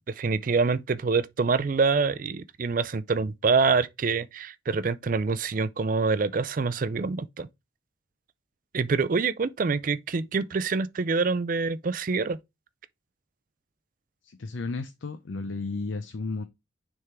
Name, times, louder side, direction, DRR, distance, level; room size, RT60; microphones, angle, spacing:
voice 1, 0.1-7.5 8.7-12.4, right 4 dB, 45° right, 0.4 m, -26 dB
voice 2, 14.2-16.4, left 3 dB, 75° left, 0.6 m, -33 dB
6.6 x 3.6 x 4.4 m
head